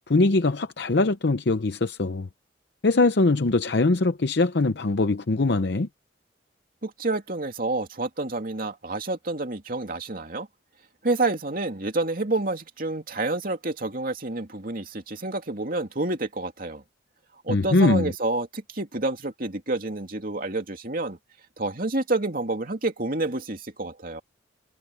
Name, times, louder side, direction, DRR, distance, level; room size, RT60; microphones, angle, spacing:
voice 1, 0.1-2.3 2.8-5.9 17.5-18.1, left 3 dB, 60° left, 0.7 m, -22 dB
voice 2, 6.8-10.5 11.0-16.8 17.4-21.2 21.6-24.2, right 2 dB, 50° right, 2.8 m, -28 dB
head